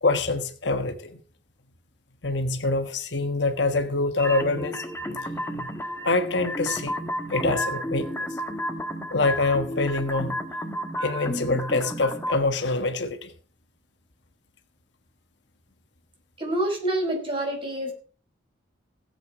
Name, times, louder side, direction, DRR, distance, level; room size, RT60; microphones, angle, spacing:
voice 1, 0.0-1.2 2.2-5.7 6.0-7.0 7.3-8.4 9.1-10.4 11.0-13.3, left 3 dB, 65° left, 8 dB, 1.4 m, -25 dB
sound 1, 4.2-12.4, equal, 15° left, 1.3 m, -32 dB
voice 2, 16.4-17.9, right 1 dB, 30° right, 1 dB, 4.8 m, -27 dB
16.5 x 8.0 x 4.9 m, 0.42 s
head